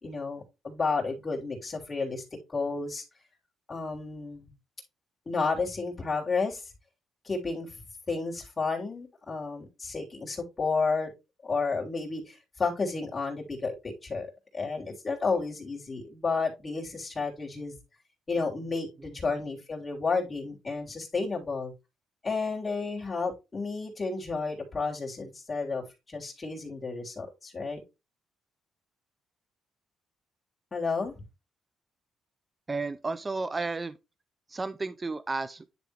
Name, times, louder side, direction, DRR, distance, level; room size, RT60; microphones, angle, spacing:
voice 1, 0.0-2.2 2.5-3.0 3.7-4.5 5.2-6.6 7.2-7.7 8.1-11.1 11.4-14.3 14.5-17.8 18.3-21.7 22.2-27.8 30.7-31.1, left 4 dB, 30° left, 3.3 m, -31 dB
voice 2, 32.7-34.0 34.5-35.6, right 3 dB, 25° right, 0.5 m, -32 dB
10.5 x 3.6 x 3.5 m
cardioid pair, 90°, 0 cm